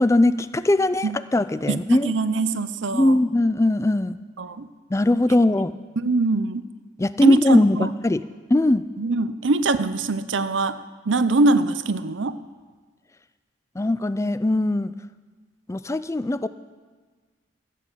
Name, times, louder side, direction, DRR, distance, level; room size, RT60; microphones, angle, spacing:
voice 1, 0.0-2.1 2.9-4.2 4.9-5.7 7.0-8.2 8.5-8.8 13.8-14.9 15.7-16.5, left 1 dB, 15° left, 14 dB, 0.4 m, -20 dB
voice 2, 1.7-3.2 4.4-4.7 6.0-6.6 7.2-7.9 9.0-10.8 11.1-12.4, right 3 dB, 80° right, 13 dB, 0.7 m, -23 dB
15.0 x 8.4 x 7.5 m, 1.5 s
head